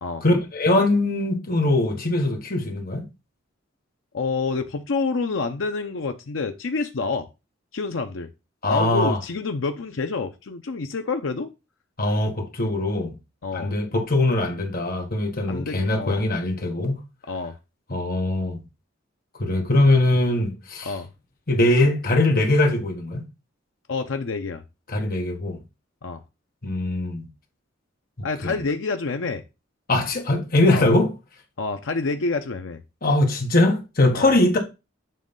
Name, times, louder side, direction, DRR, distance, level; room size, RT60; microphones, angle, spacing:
voice 1, 0.2-3.1 8.6-9.2 12.0-13.1 13.5-17.0 17.9-18.6 19.4-20.9 21.5-23.3 24.9-25.6 26.6-27.3 28.2-28.6 29.9-31.1 33.0-34.6, left 2 dB, 50° left, 1.5 m, -21 dB
voice 2, 4.1-7.3 7.7-8.3 8.7-11.5 13.4-13.7 15.5-16.2 17.3-17.5 20.8-21.1 23.9-24.6 26.0-26.2 28.2-29.4 30.7-30.9 31.6-32.8 34.1-34.6, left 4 dB, 75° left, 0.6 m, -28 dB
7.6 x 3.2 x 5.2 m
head